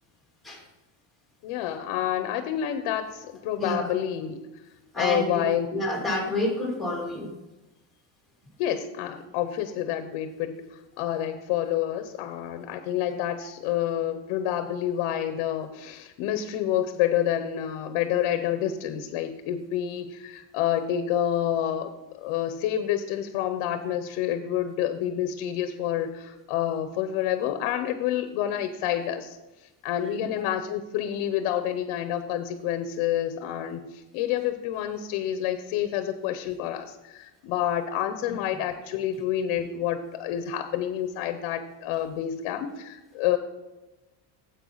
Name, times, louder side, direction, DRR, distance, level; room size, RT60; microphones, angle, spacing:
voice 1, 1.4-4.4 5.0-5.7 8.6-10.6 11.0-29.4 29.8-43.4, left 11 dB, 75° left, 9 dB, 1.0 m, -28 dB
voice 2, 3.6-3.9 4.9-5.4 5.7-7.3, left 1 dB, ahead, -2 dB, 2.5 m, -28 dB
9.3 x 8.1 x 4.0 m, 1.1 s
cardioid pair, 155°, 49 cm